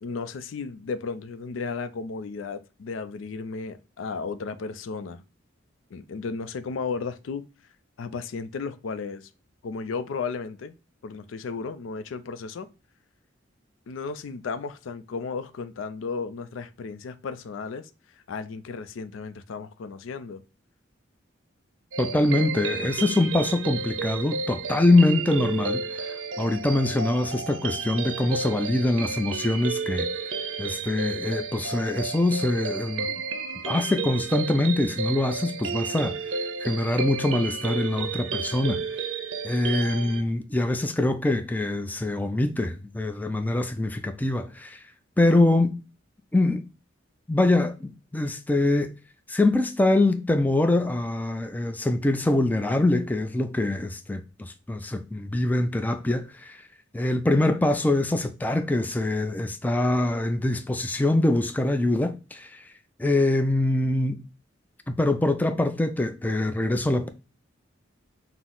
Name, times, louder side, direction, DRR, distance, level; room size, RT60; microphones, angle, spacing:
voice 1, 0.0-5.2 5.9-7.5 8.0-9.3 9.6-10.7 11.0-12.7 13.9-17.9 18.3-20.4, left 4 dB, 80° left, 0.4 m, -34 dB
sound 1, 21.9-40.2, right 4 dB, 85° right, 0.6 m, -32 dB
voice 2, 22.0-30.1 30.6-33.1 33.6-38.8 39.4-44.8 45.2-45.8 46.3-46.6 47.3-48.9 49.3-56.6 56.9-62.6 63.0-64.2 64.9-67.1, left 2 dB, 10° left, 0.3 m, -24 dB
6.0 x 2.0 x 3.7 m
head